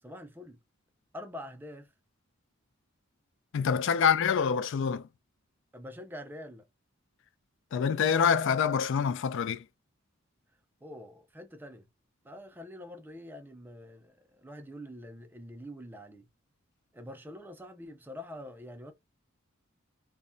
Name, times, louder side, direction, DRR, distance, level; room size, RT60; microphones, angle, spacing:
voice 1, 0.0-0.6 1.1-1.9 5.7-6.7 10.8-11.9 12.2-16.3 16.9-18.9, left 1 dB, 10° right, 0.4 m, -45 dB
voice 2, 3.5-5.1 7.7-9.6, left 7 dB, 60° left, 0.3 m, -26 dB
2.2 x 2.0 x 3.7 m
head